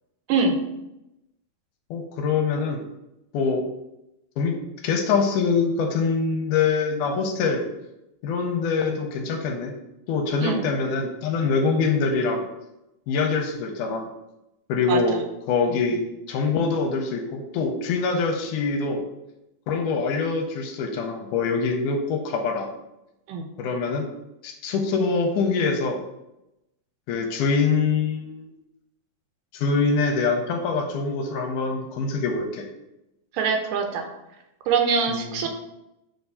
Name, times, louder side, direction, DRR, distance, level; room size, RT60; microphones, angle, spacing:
voice 1, 1.9-2.9 3.3-3.6 4.4-4.6 4.8-7.7 8.2-9.8 10.1-12.4 13.1-14.1 14.7-15.2 15.5-19.0 19.7-22.7 23.6-24.1 24.4-26.0 27.1-28.5 29.5-32.7 35.1-35.5, left 4 dB, 80° left, 4 dB, 2.1 m, -24 dB
voice 2, 33.3-34.1 34.7-35.5, right 5 dB, 80° right, 4 dB, 2.3 m, -23 dB
6.5 x 3.5 x 5.5 m, 0.90 s
omnidirectional pair, 3.9 m